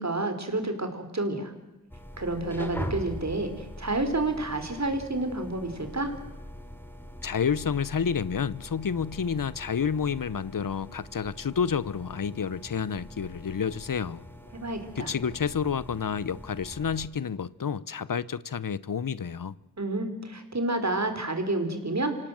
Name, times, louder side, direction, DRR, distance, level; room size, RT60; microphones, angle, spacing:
voice 1, 0.0-1.5 2.2-6.1 14.5-15.1 19.8-22.2, right 2 dB, 50° right, 4.0 m, -29 dB
sound 1, 1.9-17.1, equal, 5° left, 2.9 m, -42 dB
voice 2, 7.2-14.2 15.0-19.6, left 7 dB, 70° left, 0.8 m, -29 dB
26.0 x 17.5 x 7.8 m
cardioid pair, 45°, 34 cm